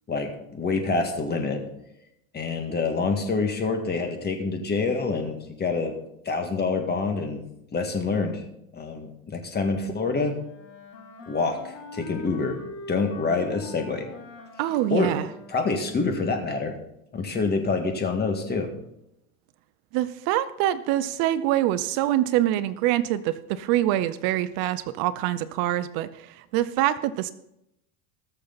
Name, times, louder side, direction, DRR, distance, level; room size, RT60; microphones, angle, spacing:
voice 1, 0.1-1.6 2.3-5.9 6.3-7.4 7.7-8.4 8.7-10.3 11.3-12.6 12.9-14.1 14.9-15.1 15.5-16.7 17.1-18.7, left 4 dB, 25° left, 5 dB, 1.9 m, -26 dB
Wind instrument woodwind instrument, 10.4-15.8, left 3 dB, 65° left, 3.3 m, -42 dB
voice 2, 14.6-15.3 19.9-27.3, right 13 dB, 55° right, 14 dB, 0.7 m, -25 dB
20.0 x 6.7 x 4.0 m, 0.83 s
supercardioid pair, 130°, 42 cm